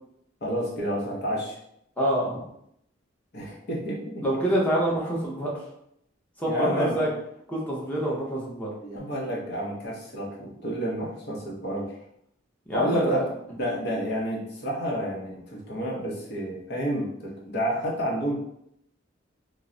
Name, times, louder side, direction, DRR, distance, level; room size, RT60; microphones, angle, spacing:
voice 1, 0.4-1.6 3.3-4.2 6.4-7.0 8.8-11.9 12.7-18.3, equal, 55° left, -4 dB, 0.8 m, -30 dB
voice 2, 2.0-2.4 4.2-5.5 6.4-7.1 7.5-8.7 12.7-13.2, right 1 dB, 10° left, -5 dB, 0.7 m, -26 dB
2.2 x 2.0 x 3.7 m, 0.74 s
head